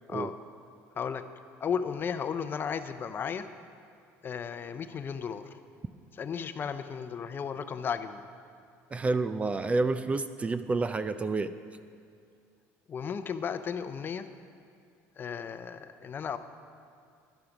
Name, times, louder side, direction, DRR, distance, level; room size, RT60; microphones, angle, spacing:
voice 1, 1.6-3.5 4.2-5.5 6.1-8.3 12.9-14.3 15.2-16.4, left 7 dB, 35° left, 11 dB, 0.6 m, -34 dB
voice 2, 8.9-11.5, right 3 dB, 20° right, 12 dB, 0.4 m, -29 dB
11.5 x 11.5 x 6.0 m, 2.3 s
cardioid pair, 120°, 6 cm